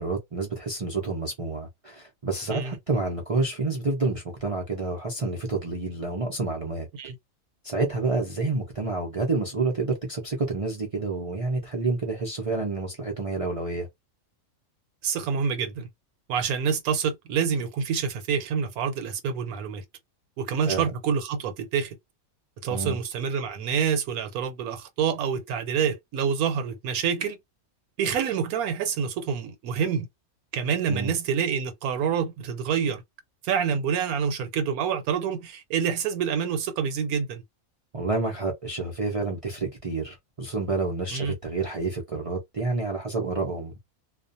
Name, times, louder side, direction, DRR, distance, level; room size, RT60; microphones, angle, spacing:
voice 1, 0.0-6.9 7.6-13.9 20.7-20.8 22.7-23.0 30.9-31.1 37.9-43.7, right 3 dB, 55° right, 0.3 m, -29 dB
voice 2, 15.0-15.9 16.3-19.8 20.4-22.0 22.6-27.4 28.0-30.1 30.5-33.0 33.4-37.4 41.1-41.3, right 7 dB, 80° right, 1.1 m, -27 dB
2.4 x 2.1 x 2.5 m
omnidirectional pair, 1.5 m